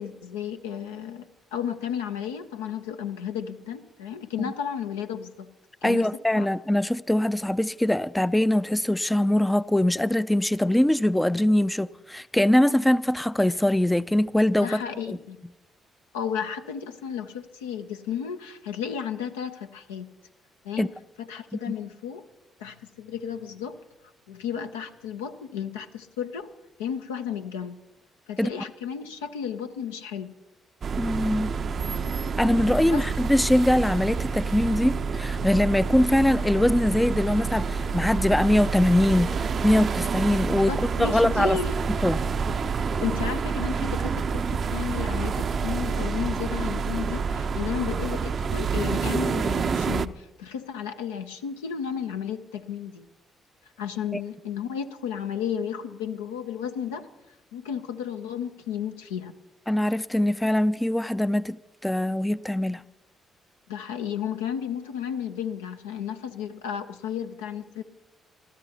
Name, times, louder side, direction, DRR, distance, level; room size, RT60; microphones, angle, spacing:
voice 1, 0.0-5.5 5.8-6.1 6.3-6.5 14.6-15.4 16.1-20.1 20.6-20.9 21.2-22.2 22.6-23.8 24.3-26.5 26.8-27.8 28.3-30.3 32.8-33.1 40.5-41.7 43.0-53.1 53.8-57.1 57.5-59.3 63.7-67.8, left 8 dB, 75° left, 0.6 m, -33 dB
voice 2, 5.8-14.8 15.1-15.2 20.8-20.9 28.4-28.5 31.0-31.6 32.4-40.7 41.0-41.6 42.0-42.2 54.1-54.2 59.7-61.6 61.8-62.8, left 1 dB, 10° left, 0.4 m, -22 dB
sound 1, 30.8-50.1, right 5 dB, 45° right, 0.5 m, -28 dB
29.5 x 13.0 x 2.9 m
figure-of-eight pair, 40°, 0 cm